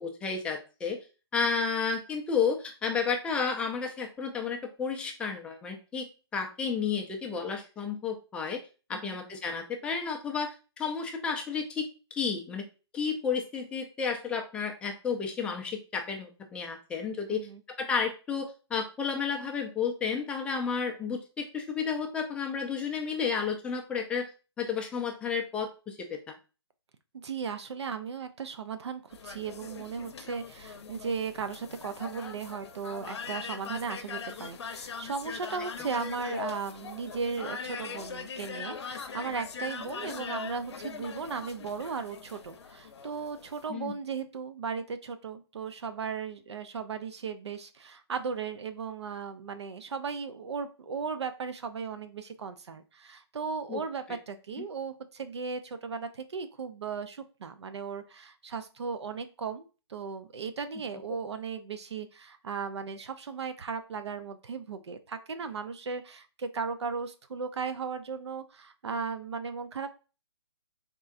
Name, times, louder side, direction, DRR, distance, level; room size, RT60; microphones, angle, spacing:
voice 1, 0.0-1.0 1.3-6.1 6.3-8.6 8.9-12.7 12.9-17.5 17.8-24.3 24.6-26.3 40.1-40.2 43.7-43.9 53.7-53.8, left 6 dB, 5° left, 3 dB, 0.4 m, -32 dB
voice 2, 17.3-17.6 27.1-69.9, right 5 dB, 75° right, 10 dB, 0.5 m, -36 dB
sound 1, 29.1-43.7, left 6 dB, 70° left, 0.7 m, -41 dB
4.2 x 3.6 x 2.4 m, 0.33 s
hypercardioid pair, 150°, 14 cm